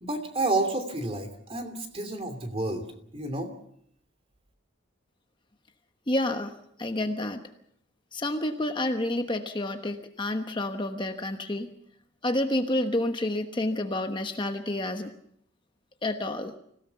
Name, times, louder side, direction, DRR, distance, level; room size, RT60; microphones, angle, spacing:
voice 1, 0.0-2.9 3.1-3.5, right 2 dB, 30° right, 8 dB, 2.8 m, -30 dB
voice 2, 6.1-7.4 8.1-11.7 12.2-15.1 16.0-16.5, left 1 dB, 25° left, 6 dB, 1.1 m, -29 dB
25.5 x 17.0 x 6.9 m, 0.70 s
head